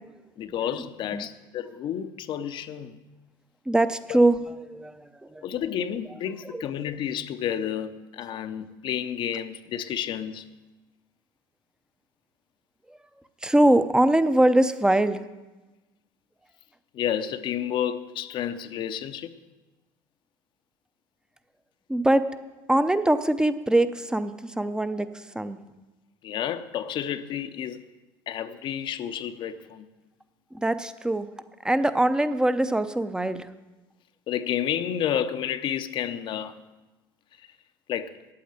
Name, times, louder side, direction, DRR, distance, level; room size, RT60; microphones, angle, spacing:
voice 1, 0.4-3.0 4.1-4.2 5.4-10.5 16.9-19.3 26.2-27.8 28.3-29.9 34.3-36.6 37.9-38.1, left 9 dB, 50° left, 0.7 m, -30 dB
voice 2, 3.7-5.5 6.5-6.7 13.4-15.2 21.9-22.2 22.7-25.6 30.5-31.3 31.6-33.5, right 1 dB, 5° right, 0.7 m, -23 dB
8.6 x 8.5 x 8.9 m
supercardioid pair, 90°, 10 cm